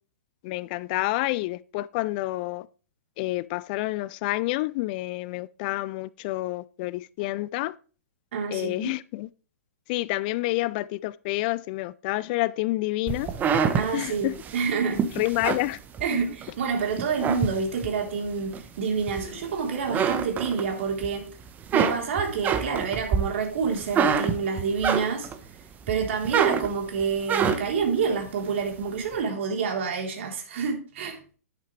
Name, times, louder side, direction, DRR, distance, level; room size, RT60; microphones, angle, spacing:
voice 1, 0.4-2.7 3.2-7.7 8.5-9.3 9.9-13.3 13.9-14.3 15.2-15.8, left 19 dB, 35° left, 0.3 m, -28 dB
voice 2, 8.3-8.9 13.7-15.1 16.0-21.3 21.7-25.3 25.9-31.2, right 5 dB, 55° right, 3.6 m, -28 dB
sound 1, 13.1-16.5 16.9-18.0 18.5-19.5 19.8-21.1 21.4-25.4 25.9-27.8, right 7 dB, 20° right, 1.1 m, -26 dB
11.0 x 8.7 x 3.3 m
figure-of-eight pair, 115°, 8 cm